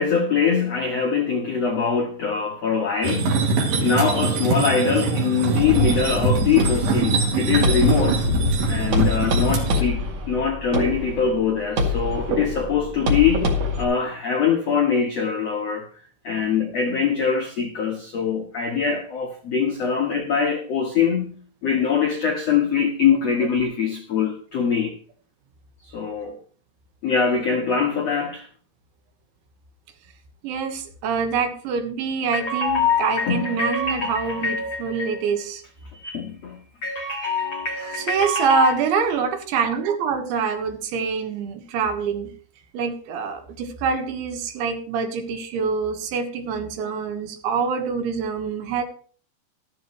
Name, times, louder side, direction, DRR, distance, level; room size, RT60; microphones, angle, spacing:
voice 1, 0.0-3.5 3.8-8.2 8.7-15.9 16.2-24.9 25.8-26.4 27.0-28.5 32.3-35.3 35.9-38.7, left 6 dB, 75° left, 1.5 m, -23 dB
sound 1, 3.0-9.8, right 4 dB, 60° right, 4.1 m, -23 dB
sound 2, 5.6-13.8, left 2 dB, 45° right, 2.9 m, -25 dB
voice 2, 30.4-35.6 38.0-42.3 42.7-48.8, right 5 dB, 85° right, 3.8 m, -25 dB
13.5 x 13.5 x 3.2 m
omnidirectional pair, 5.3 m